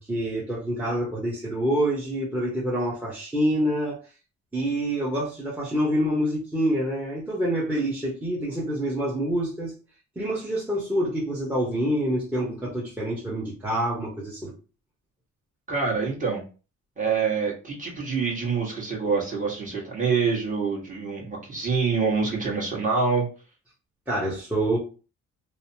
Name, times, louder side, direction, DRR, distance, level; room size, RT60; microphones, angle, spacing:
voice 1, 0.0-4.0 4.5-9.7 10.2-14.5 24.1-24.8, right 1 dB, 5° right, -6 dB, 0.9 m, -26 dB
voice 2, 15.7-16.4 17.0-23.2, right 5 dB, 25° right, -4 dB, 1.3 m, -26 dB
3.0 x 2.0 x 2.7 m, 0.35 s
cardioid pair, 90°, 30 cm